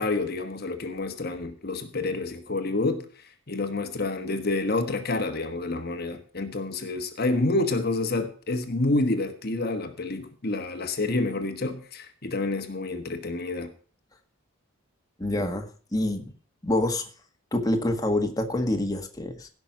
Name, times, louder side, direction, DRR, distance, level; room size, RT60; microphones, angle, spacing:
voice 1, 0.0-3.1 3.5-13.7, left 2 dB, 45° left, 1.3 m, -28 dB
voice 2, 15.2-16.3 16.6-17.1 17.5-19.5, left 1 dB, 15° left, 1.7 m, -26 dB
16.5 x 6.1 x 6.1 m
head